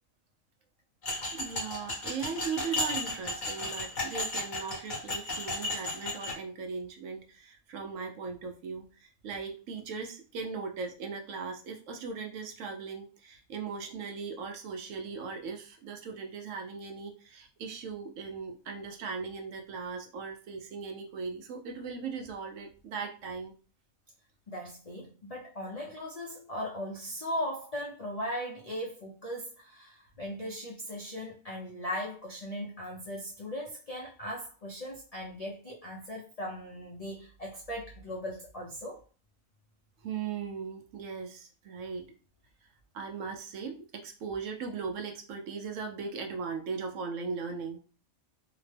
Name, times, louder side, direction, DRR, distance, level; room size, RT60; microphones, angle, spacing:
sound 1, 1.0-6.3, left 1 dB, 40° left, 0.9 m, -34 dB
voice 1, 1.3-23.5 40.0-42.1 42.9-47.8, right 5 dB, 70° right, 0.9 m, -38 dB
voice 2, 24.5-39.0, equal, 80° left, 0.3 m, -38 dB
2.8 x 2.1 x 3.2 m
omnidirectional pair, 1.5 m